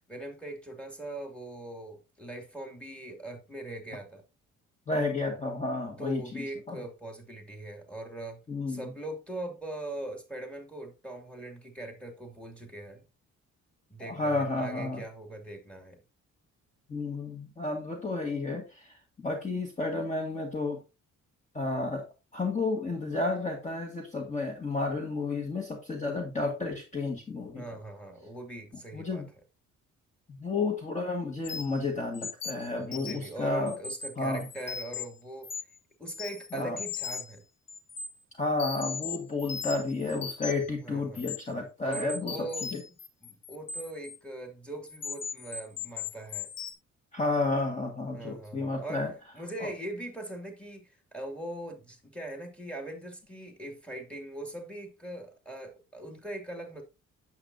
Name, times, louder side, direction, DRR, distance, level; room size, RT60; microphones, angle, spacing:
voice 1, 0.1-4.2 6.0-8.4 8.7-13.1 13.9-16.0 27.5-29.3 32.9-35.5 36.0-37.4 40.8-41.3 41.8-42.7 43.2-46.5 48.1-49.0 49.3-56.8, right 1 dB, 5° left, 2.5 m, -41 dB
voice 2, 4.9-6.8 8.5-8.9 14.0-15.0 16.9-20.8 21.5-22.0 22.3-27.6 28.9-29.3 30.3-33.8 34.2-34.5 36.5-36.8 38.4-42.8 47.1-49.1 49.6-49.7, left 3 dB, 25° left, 1.7 m, -31 dB
sound 1, 31.4-31.8 32.1-33.3 33.7-35.0 35.4-35.8 36.1-37.4 37.7-38.1 38.6-40.7 41.2-41.4 41.9-44.2 44.9-46.7, left 6 dB, 55° left, 1.6 m, -38 dB
8.7 x 7.6 x 2.7 m
cardioid pair, 90°, 30 cm